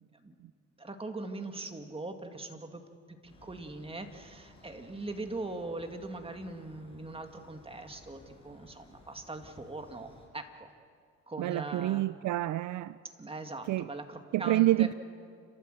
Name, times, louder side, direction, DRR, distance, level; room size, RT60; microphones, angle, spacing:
voice 1, 0.1-0.5 0.8-2.8 3.1-10.7 11.3-12.0 13.2-14.9, right 2 dB, 20° right, 5 dB, 2.2 m, -41 dB
sound 1, 3.3-10.3, left 2 dB, 20° left, 6.5 m, -57 dB
voice 2, 11.4-13.0 13.7-13.9 14.3-14.9, right 15 dB, 70° right, 16 dB, 0.5 m, -28 dB
29.5 x 13.5 x 7.9 m, 2.1 s
cardioid pair, 90°, 30 cm